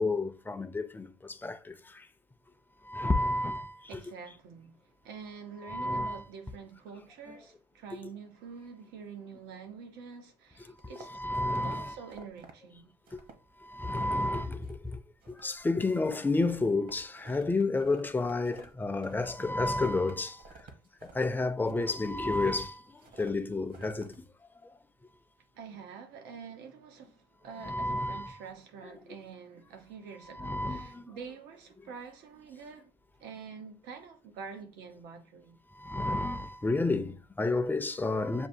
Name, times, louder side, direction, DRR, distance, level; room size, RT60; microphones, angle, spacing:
voice 1, 0.0-2.1 2.8-4.0 5.7-6.2 11.0-12.0 13.6-15.0 15.3-20.5 21.0-24.3 24.6-24.7 27.6-28.4 30.3-31.1 35.7-38.5, left 2 dB, 10° left, 0.5 m, -31 dB
voice 2, 3.9-11.2 11.6-12.9 25.5-32.9 33.2-35.6, right 6 dB, 90° right, 0.9 m, -47 dB
sound 1, 10.8-11.7 12.1-12.5 13.1-13.4 13.7-14.3 14.6-14.9 15.2-15.6 15.9-19.5 19.8-22.6 23.0-23.3 23.7-24.2, right 3 dB, 55° right, 1.0 m, -52 dB
7.1 x 2.5 x 2.7 m
cardioid pair, 110°, 17 cm